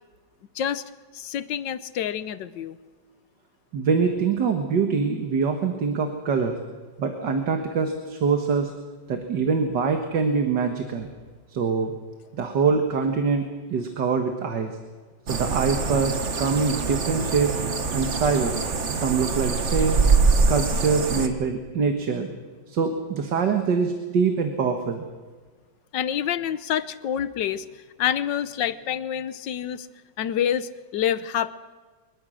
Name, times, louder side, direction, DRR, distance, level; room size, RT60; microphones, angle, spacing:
voice 1, 1.1-2.8 25.9-27.6 28.0-29.9 30.2-31.5, left 9 dB, 90° left, 14 dB, 1.5 m, -27 dB
voice 2, 3.7-6.6 7.0-8.7 9.1-11.1 11.5-11.9 12.3-14.8 15.3-17.5 17.9-18.6 19.0-20.0 20.5-22.3 22.7-25.1, right 5 dB, 80° right, 5 dB, 2.1 m, -24 dB
sound 1, 15.3-21.3, right 4 dB, 45° right, 1.6 m, -24 dB
24.0 x 21.5 x 6.4 m, 1.4 s
omnidirectional pair, 1.9 m